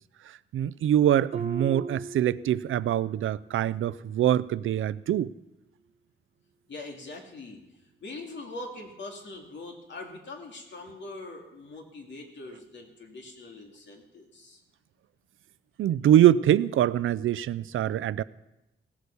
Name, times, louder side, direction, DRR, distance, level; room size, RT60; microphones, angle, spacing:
voice 1, 0.5-5.3 15.8-18.2, right 11 dB, 90° right, 18 dB, 0.5 m, -24 dB
Harp, 1.3-3.1 3.4-3.8 4.4-4.5, right 4 dB, 30° right, 0.4 m, -38 dB
voice 2, 6.7-7.6 8.0-14.6, left 2 dB, 65° left, 2 dB, 2.5 m, -42 dB
16.5 x 8.1 x 7.0 m, 0.93 s
wide cardioid pair, 130°, 20 cm